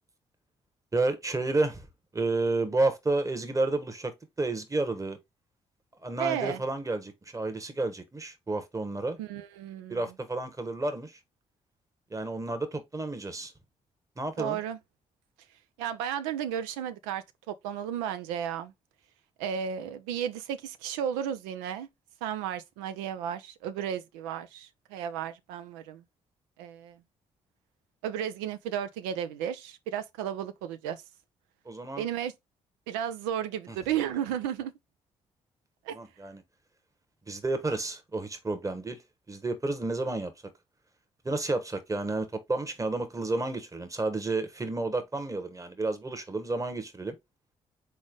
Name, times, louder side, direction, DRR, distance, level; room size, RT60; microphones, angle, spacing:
voice 1, 0.9-1.9 2.1-5.2 6.0-9.2 9.9-11.2 12.1-13.5 14.2-14.6 31.6-32.0 33.7-33.8 35.9-36.4 37.3-39.0 39.3-40.3 41.2-47.1, right 2 dB, 20° right, 1.1 m, -31 dB
voice 2, 6.2-6.6 9.2-10.1 14.4-14.8 15.8-18.7 19.4-21.9 22.2-26.0 26.6-27.0 28.0-31.0 32.0-32.3 32.9-34.7 35.9-36.0, right 9 dB, 80° right, 0.4 m, -33 dB
4.0 x 3.2 x 3.8 m
hypercardioid pair, 45°, 16 cm